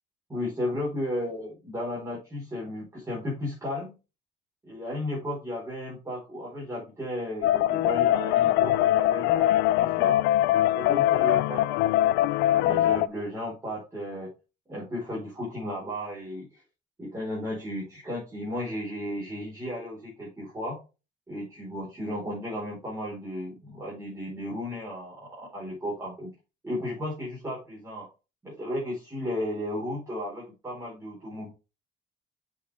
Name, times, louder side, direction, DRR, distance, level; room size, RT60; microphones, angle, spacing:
voice 1, 0.3-4.0 4.6-10.2 10.6-12.0 12.5-14.3 14.7-16.6 17.0-20.8 21.3-26.3 26.6-28.1 28.4-31.5, left 1 dB, 15° right, -6 dB, 4.5 m, -34 dB
sound 1, 7.4-13.1, left 13 dB, 90° left, 0.4 m, -22 dB
8.2 x 6.1 x 3.5 m, 0.30 s
cardioid pair, 110°, 17 cm